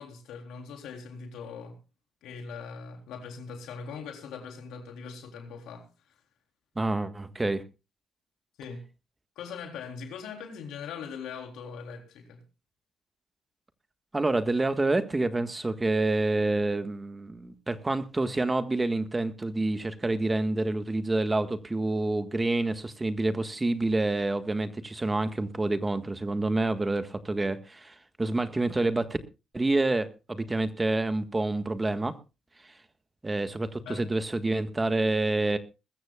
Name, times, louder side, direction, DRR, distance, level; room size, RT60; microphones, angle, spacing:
voice 1, 0.0-1.8 2.2-5.9 8.6-8.8 9.4-12.4 33.9-34.1, left 6 dB, 85° left, 3.7 m, -41 dB
voice 2, 6.7-7.6 14.1-29.2 29.5-32.1 33.2-35.6, right 2 dB, 25° right, 1.6 m, -28 dB
21.0 x 14.0 x 2.4 m
supercardioid pair, 60°, 0 cm